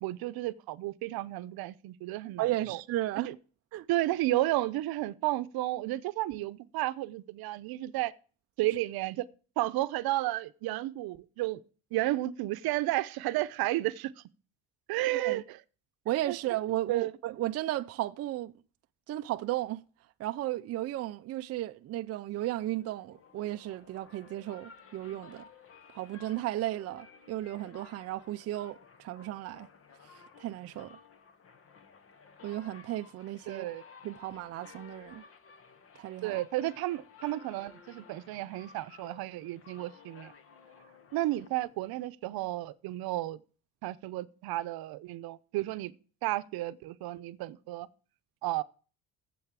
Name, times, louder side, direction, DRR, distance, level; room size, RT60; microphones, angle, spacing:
voice 1, 0.0-2.8 3.2-3.3 3.9-8.1 8.6-9.2 9.6-11.6 11.9-14.1 14.9-15.6 16.3-16.4 16.9-17.1 33.5-33.8 36.2-40.3 41.1-43.4 43.8-45.9 46.2-47.9 48.4-48.6, right 16 dB, 80° right, 0.7 m, -32 dB
voice 2, 2.4-3.3 3.7-3.9 15.1-15.4 16.1-18.5 19.1-19.8 20.2-25.4 25.9-29.7 30.4-31.0 32.4-33.7 34.0-35.2 36.0-36.4, right 15 dB, 45° right, 0.4 m, -34 dB
sound 1, 22.7-42.1, left 6 dB, 40° left, 1.2 m, -55 dB
8.1 x 7.8 x 7.3 m
cardioid pair, 175°, 36 cm